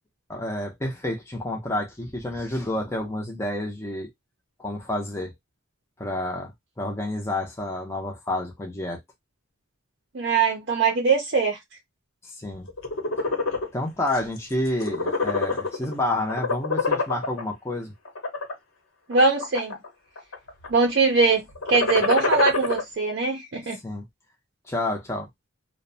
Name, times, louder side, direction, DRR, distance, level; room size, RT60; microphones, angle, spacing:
voice 1, 0.3-4.1 4.6-5.3 6.0-9.0 12.2-12.7 13.7-17.9 23.8-24.0 24.7-25.3, left 1 dB, 15° left, 0.5 m, -29 dB
voice 2, 10.1-11.6 19.1-19.8 20.7-21.4 21.7-23.8, right 4 dB, 55° right, 0.5 m, -21 dB
sound 1, 12.7-13.7 14.1-14.4 14.7-15.9 16.3-17.4 18.0-18.5 19.1-19.9 20.2-20.7 21.5-22.8, left 4 dB, 80° left, 0.9 m, -25 dB
2.6 x 2.1 x 2.6 m
head